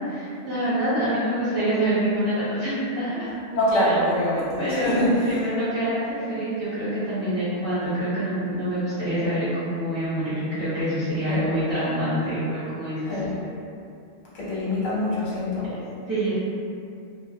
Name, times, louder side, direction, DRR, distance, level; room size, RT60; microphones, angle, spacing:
voice 1, 0.0-3.3 4.6-13.1 16.1-16.4, right 1 dB, 15° right, -18 dB, 0.5 m, -26 dB
voice 2, 3.5-5.4 11.3-11.5 13.0-13.4 14.3-15.8, left 1 dB, 70° left, -8 dB, 1.1 m, -24 dB
2.4 x 2.0 x 2.7 m, 2.5 s
omnidirectional pair, 1.4 m